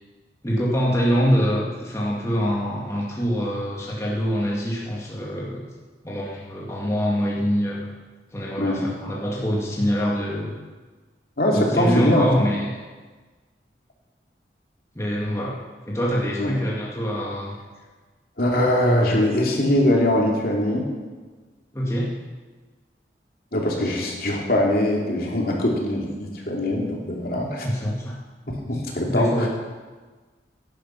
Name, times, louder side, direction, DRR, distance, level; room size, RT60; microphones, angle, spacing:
voice 1, 0.4-5.6 6.0-7.9 8.3-10.5 11.5-12.7 15.0-15.5 15.9-17.5 21.7-22.1 27.6-28.2 28.6-28.8 29.1-29.5, equal, 15° left, -5 dB, 2.1 m, -24 dB
voice 2, 11.4-12.5 16.4-16.5 18.4-20.8 23.5-27.7 28.5-29.5, left 1 dB, 55° left, -1 dB, 3.0 m, -22 dB
16.0 x 11.0 x 5.9 m, 1.4 s
head